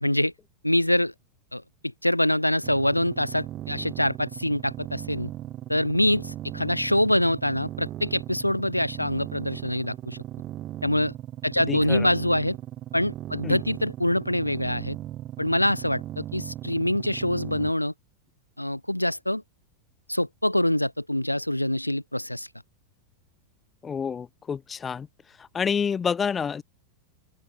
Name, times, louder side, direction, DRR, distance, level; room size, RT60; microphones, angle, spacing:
voice 1, 0.0-0.3 0.6-1.1 1.5-1.6 2.0-5.3 5.7-10.2 10.8-11.1 11.4-12.6 12.9-15.0 15.4-17.9 18.6-19.4 20.1-22.5, left 1 dB, 90° left, 0.4 m, -25 dB
sound 1, 2.6-17.7, right 13 dB, 35° right, 5.1 m, -38 dB
voice 2, 11.7-12.1 13.4-13.6 23.8-25.1 25.4-26.6, left 6 dB, 20° left, 2.1 m, -28 dB
open air
figure-of-eight pair, 90°, 0 cm